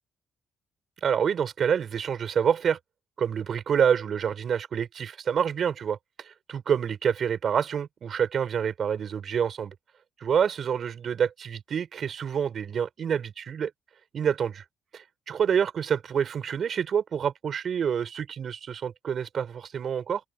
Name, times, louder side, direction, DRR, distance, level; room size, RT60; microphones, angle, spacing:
voice 1, 1.0-2.8 3.2-9.7 10.2-13.7 14.1-14.6 14.9-20.2, right 7 dB, 55° right, 6.2 m, -27 dB
cardioid pair, 80°, 0 cm